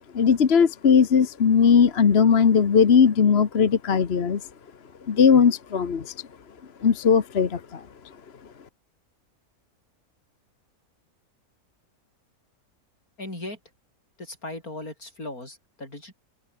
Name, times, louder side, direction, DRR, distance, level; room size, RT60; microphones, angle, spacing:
voice 1, 0.1-4.4 5.1-6.1 6.8-7.9, left 6 dB, 45° left, 1.3 m, -19 dB
voice 2, 13.2-13.6 14.2-16.1, left 2 dB, 75° left, 8.5 m, -37 dB
open air
omnidirectional pair, 1.5 m